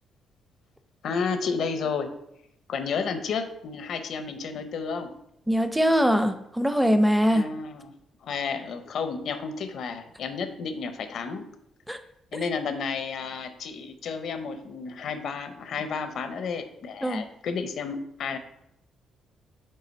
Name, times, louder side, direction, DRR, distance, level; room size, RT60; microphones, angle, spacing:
voice 1, 1.0-2.1 2.7-5.1 7.3-7.9 8.2-11.5 12.3-18.4, left 5 dB, 65° left, 9 dB, 0.7 m, -31 dB
voice 2, 5.5-7.5 11.9-12.0 17.0-17.3, equal, 5° right, 8 dB, 0.6 m, -22 dB
5.4 x 3.9 x 5.2 m, 0.81 s
cardioid pair, 90°, 0 cm